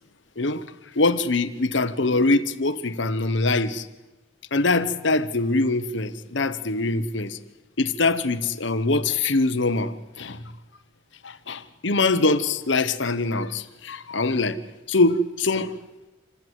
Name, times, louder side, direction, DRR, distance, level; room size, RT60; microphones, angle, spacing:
voice 1, 1.0-3.9 4.5-7.4 7.8-10.4 11.2-14.6 14.9-15.7, left 3 dB, 65° left, 12 dB, 1.2 m, -23 dB
27.0 x 15.5 x 8.3 m, 1.1 s
head